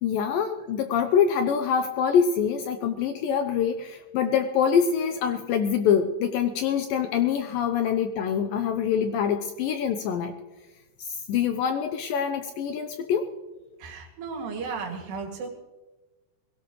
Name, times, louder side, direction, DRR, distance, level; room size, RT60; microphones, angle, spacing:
voice 1, 0.0-10.4 11.0-13.3, left 7 dB, 80° left, 7 dB, 2.1 m, -25 dB
voice 2, 13.8-15.5, right 5 dB, 80° right, 1 dB, 4.3 m, -34 dB
22.0 x 17.0 x 3.1 m, 1.2 s
omnidirectional pair, 4.7 m